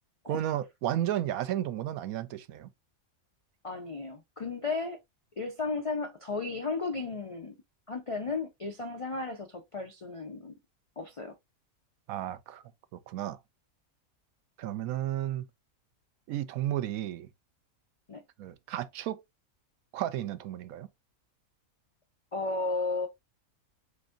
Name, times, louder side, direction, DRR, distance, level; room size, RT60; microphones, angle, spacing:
voice 1, 0.3-2.7 12.1-12.6 13.1-13.4 14.6-15.4 16.3-17.3 18.4-19.2 19.9-20.9, right 12 dB, 80° right, 1.0 m, -33 dB
voice 2, 3.6-5.0 5.4-7.6 7.9-10.5 11.0-11.4 18.1-18.2 22.3-23.1, left 3 dB, 60° left, 0.3 m, -34 dB
7.9 x 2.6 x 2.4 m
omnidirectional pair, 1.5 m